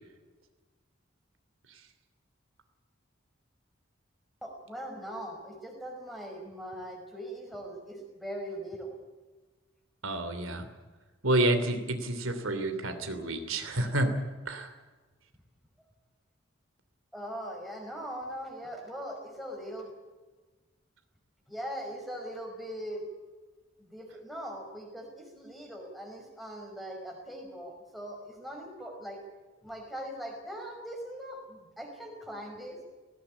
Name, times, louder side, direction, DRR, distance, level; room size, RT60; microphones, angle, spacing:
voice 1, 4.4-9.0 15.8-15.9 17.1-19.9 21.5-23.0 23.9-29.2 29.6-32.8, equal, ahead, 0 dB, 5.3 m, -40 dB
voice 2, 10.0-10.7 11.2-14.1 14.4-14.7, right 1 dB, 90° right, 7 dB, 3.1 m, -29 dB
18.5 x 17.0 x 9.9 m, 1.3 s
head